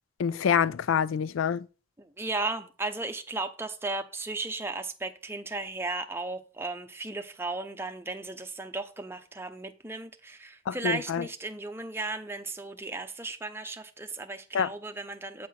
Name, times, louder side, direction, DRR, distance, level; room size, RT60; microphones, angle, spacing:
voice 1, 0.2-1.6 10.7-11.2 14.5-14.7, left 7 dB, 75° left, 0.4 m, -26 dB
voice 2, 2.0-15.5, right 3 dB, 10° right, 0.6 m, -35 dB
8.4 x 4.3 x 5.7 m
head